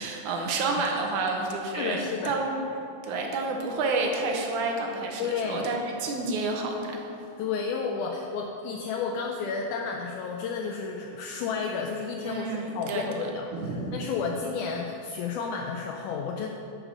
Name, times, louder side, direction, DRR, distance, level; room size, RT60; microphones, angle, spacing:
voice 1, 0.0-2.6 3.0-7.1 12.2-13.0 13.5-14.0, right 3 dB, 75° right, 1 dB, 2.3 m, -29 dB
voice 2, 1.7-2.3 5.2-5.7 7.4-12.5 12.8-13.5 13.9-16.5, left 5 dB, 80° left, 1 dB, 2.0 m, -31 dB
9.0 x 5.3 x 6.0 m, 2.7 s
omnidirectional pair, 3.6 m